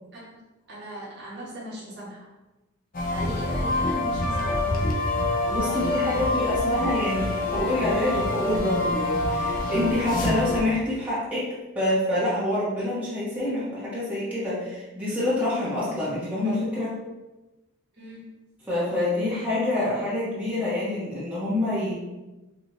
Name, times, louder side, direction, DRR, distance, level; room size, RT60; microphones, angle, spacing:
voice 1, 0.7-2.2 3.0-4.9 5.6-6.8 17.9-18.3, right 1 dB, 50° right, -6 dB, 1.1 m, -38 dB
sound 1, 2.9-10.6, left 2 dB, 40° left, 0.6 m, -26 dB
voice 2, 5.5-17.0 18.7-21.9, left 1 dB, 5° right, -10 dB, 1.4 m, -27 dB
5.0 x 2.6 x 3.0 m, 1.1 s
head